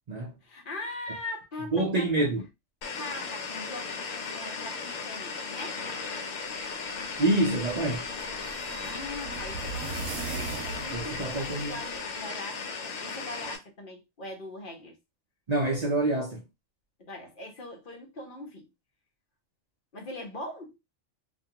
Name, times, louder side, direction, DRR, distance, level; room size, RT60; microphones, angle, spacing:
voice 1, 0.4-2.1 3.0-5.8 8.8-15.0 17.0-18.7 19.9-20.8, left 2 dB, 45° left, 0.8 m, -41 dB
voice 2, 1.7-2.4 7.2-8.1 10.9-11.8 15.5-16.4, right 2 dB, 60° right, 0.4 m, -27 dB
sound 1, 2.8-13.6, left 4 dB, 70° left, 1.0 m, -36 dB
sound 2, 6.9-12.0, right 4 dB, 85° right, 1.0 m, -40 dB
2.5 x 2.2 x 2.8 m
omnidirectional pair, 1.4 m